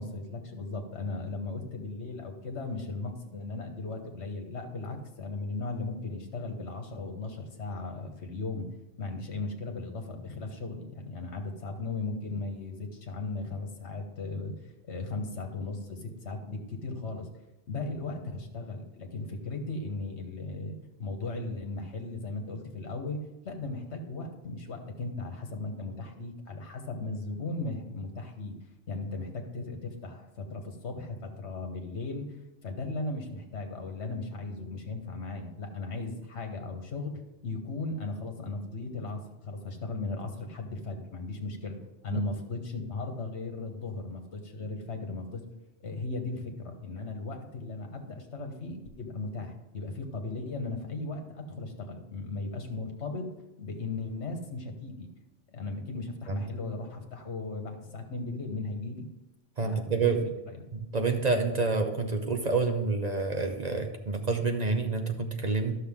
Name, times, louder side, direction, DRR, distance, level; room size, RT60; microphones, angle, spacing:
voice 1, 0.0-8.7 9.0-14.5 14.8-17.3 17.7-28.5 28.9-32.3 32.6-41.8 42.0-45.4 45.8-53.3 53.6-55.1 55.5-59.1 59.6-60.6, left 3 dB, 65° left, 4 dB, 1.5 m, -37 dB
voice 2, 59.6-60.2 60.7-65.8, right 4 dB, 40° right, 5 dB, 0.7 m, -28 dB
11.5 x 6.5 x 3.6 m, 1.0 s
omnidirectional pair, 1.3 m